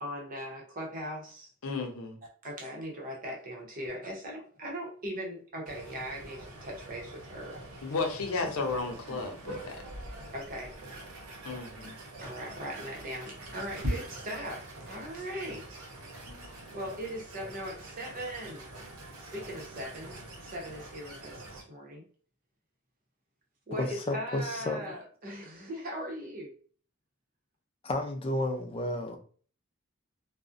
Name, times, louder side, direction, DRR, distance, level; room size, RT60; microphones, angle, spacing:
voice 1, 0.0-1.5 2.4-7.7 9.1-9.8 10.3-10.7 12.2-15.9 16.7-18.7 19.2-22.1 23.7-26.5, equal, 40° right, 0.7 m, -39 dB
voice 2, 1.6-2.2 7.8-9.8 11.4-12.0, left 3 dB, 75° left, 0.6 m, -33 dB
sound 1, 5.6-21.6, right 1 dB, 85° right, 0.7 m, -43 dB
voice 3, 23.8-24.8 27.8-29.2, left 1 dB, 25° left, 0.3 m, -32 dB
2.5 x 2.0 x 2.4 m
head